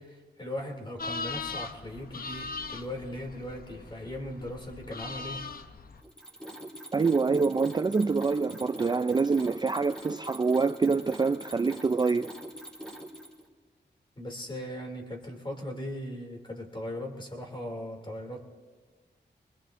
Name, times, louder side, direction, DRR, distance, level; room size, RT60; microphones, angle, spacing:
voice 1, 0.0-5.4 14.2-18.4, left 1 dB, 25° left, 2 dB, 2.6 m, -38 dB
sound 1, 1.0-6.0, left 4 dB, 55° left, 0.8 m, -39 dB
Mechanisms, 6.0-13.5, right 1 dB, 5° left, 2.6 m, -43 dB
voice 2, 6.9-12.3, right 4 dB, 25° right, 9 dB, 0.3 m, -26 dB
24.0 x 20.5 x 2.6 m, 1.5 s
wide cardioid pair, 75°, 18 cm